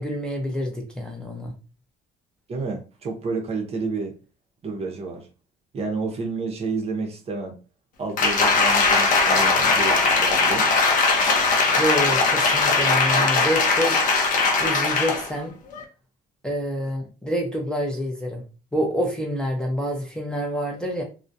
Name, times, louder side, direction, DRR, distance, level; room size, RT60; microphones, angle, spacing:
voice 1, 0.0-1.5 11.8-14.0 14.6-15.6 16.4-18.4 18.7-21.0, equal, 5° left, 0.5 m, -27 dB
voice 2, 2.5-4.1 4.6-5.3 5.7-7.5 8.0-10.7, right 4 dB, 35° right, 0.6 m, -30 dB
Applause, 8.2-15.3 15.7-15.8, left 3 dB, 50° left, 0.6 m, -20 dB
2.3 x 2.1 x 2.6 m
cardioid pair, 110°, 17 cm